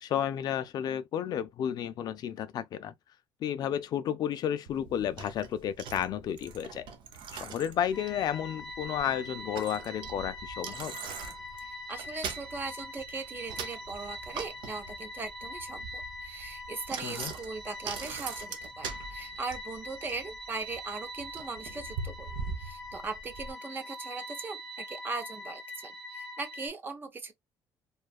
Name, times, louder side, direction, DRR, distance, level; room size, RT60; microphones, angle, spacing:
voice 1, 0.0-2.9 3.4-6.9 7.3-11.0 17.0-17.3, left 9 dB, 55° left, 0.3 m, -32 dB
Bicycle, 4.7-23.5, right 5 dB, 75° right, 0.6 m, -43 dB
sound 1, 7.9-26.7, left 1 dB, 10° left, 0.7 m, -43 dB
voice 2, 11.6-22.3 22.6-27.3, right 3 dB, 25° right, 0.5 m, -39 dB
2.7 x 2.3 x 2.2 m
cardioid pair, 140°, 8 cm